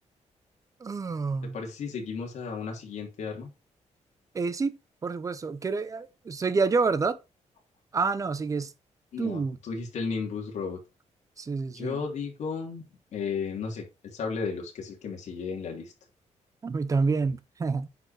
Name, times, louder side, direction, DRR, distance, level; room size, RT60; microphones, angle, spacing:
voice 1, 0.8-1.6 4.3-7.2 7.9-8.7 9.2-9.6 11.4-12.0 16.6-17.9, right 4 dB, 25° right, 0.8 m, -28 dB
voice 2, 1.5-3.5 9.1-10.8 11.7-12.9 13.1-15.9, left 5 dB, 65° left, 3.1 m, -34 dB
9.2 x 5.4 x 4.5 m
wide cardioid pair, 165°, 13 cm